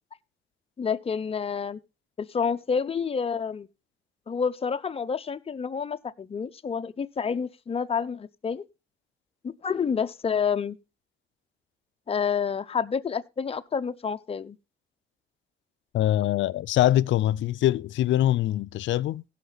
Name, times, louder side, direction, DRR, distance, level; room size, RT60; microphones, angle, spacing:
voice 1, 0.8-1.8 2.2-3.7 4.3-8.6 9.4-10.8 12.1-14.6, left 6 dB, 30° left, 0.7 m, -29 dB
voice 2, 15.9-19.2, left 13 dB, 70° left, 0.5 m, -23 dB
16.5 x 5.9 x 3.9 m
cardioid pair, 90°, 20 cm